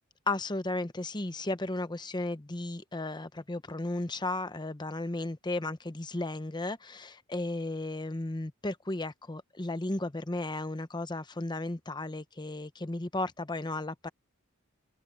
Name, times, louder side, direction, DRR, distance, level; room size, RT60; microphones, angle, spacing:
voice 1, 0.3-14.1, left 2 dB, 20° left, 0.8 m, -34 dB
head